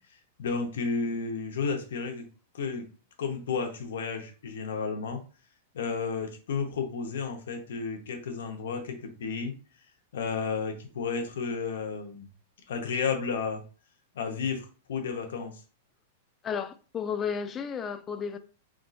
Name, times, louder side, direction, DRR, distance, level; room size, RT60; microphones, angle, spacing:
voice 1, 0.4-2.2 2.5-2.9 3.2-5.2 5.7-9.5 10.1-12.3 12.7-13.6 14.1-15.5, left 5 dB, 80° left, 0.8 m, -32 dB
voice 2, 16.4-18.4, left 7 dB, 20° left, 0.3 m, -33 dB
3.5 x 2.4 x 2.5 m
supercardioid pair, 145°, 0 cm